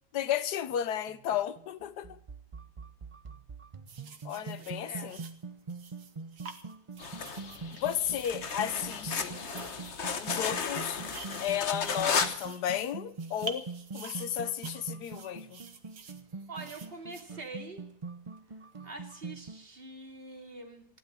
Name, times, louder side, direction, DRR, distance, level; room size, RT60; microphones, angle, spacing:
voice 1, 0.1-2.2 4.2-5.2 7.8-9.3 10.2-11.0 11.4-13.7 13.9-15.6, left 10 dB, 90° left, 1.4 m, -33 dB
sound 1, 0.7-19.7, right 4 dB, 50° right, 0.3 m, -44 dB
sound 2, 3.9-17.9 18.7-18.9, right 6 dB, 80° right, 2.0 m, -49 dB
voice 2, 4.6-5.1 16.5-17.8 18.8-20.8, right 2 dB, 35° right, 2.6 m, -45 dB
sound 3, 7.0-12.4, left 5 dB, 45° left, 1.3 m, -34 dB
15.5 x 11.5 x 7.5 m
omnidirectional pair, 1.7 m